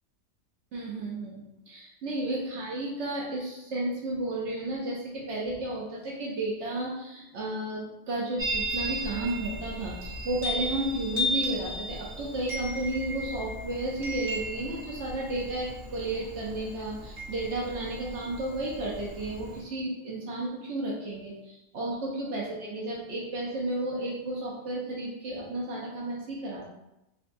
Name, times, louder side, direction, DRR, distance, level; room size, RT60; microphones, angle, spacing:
voice 1, 0.7-26.6, right 1 dB, 65° right, -4 dB, 0.9 m, -33 dB
Chime, 8.4-19.6, equal, 40° right, 1.1 m, -35 dB
3.7 x 2.2 x 2.5 m, 0.92 s
omnidirectional pair, 1.4 m